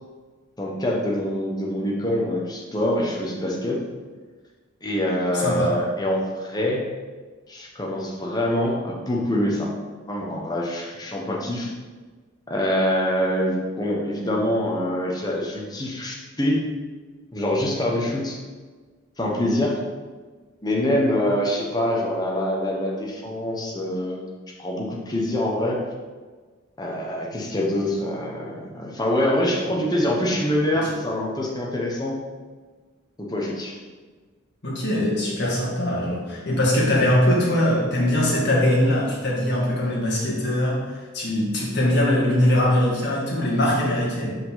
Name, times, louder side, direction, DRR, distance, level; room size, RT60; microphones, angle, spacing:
voice 1, 0.6-3.8 4.8-6.8 7.5-9.7 10.1-11.7 12.5-16.6 17.3-18.4 19.2-19.8 20.6-24.2 24.6-25.8 26.8-32.2 33.2-33.8, left 1 dB, 20° left, -2 dB, 1.0 m, -25 dB
voice 2, 5.3-5.7 34.6-44.4, left 1 dB, 60° left, -4 dB, 1.9 m, -22 dB
6.1 x 5.3 x 4.0 m, 1.4 s
head